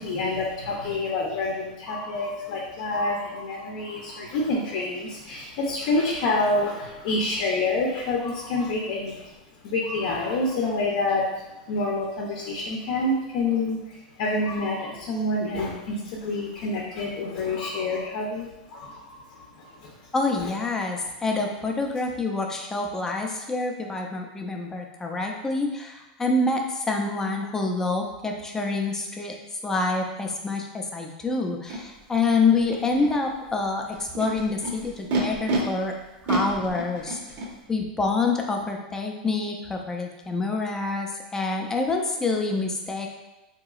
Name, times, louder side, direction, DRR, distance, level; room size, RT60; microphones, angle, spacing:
voice 1, 0.0-9.3 9.6-19.9 20.4-20.5, left 2 dB, 60° left, -2 dB, 0.6 m, -28 dB
voice 2, 20.1-29.3 29.6-35.9 36.2-37.2 37.7-43.1, left 3 dB, 10° left, 1 dB, 0.4 m, -27 dB
Animal, 31.7-31.8 32.6-33.1 33.9-35.6 36.3-37.5, right 3 dB, 40° right, 0.7 m, -29 dB
3.9 x 2.9 x 2.3 m, 1.0 s
supercardioid pair, 135°, 5 cm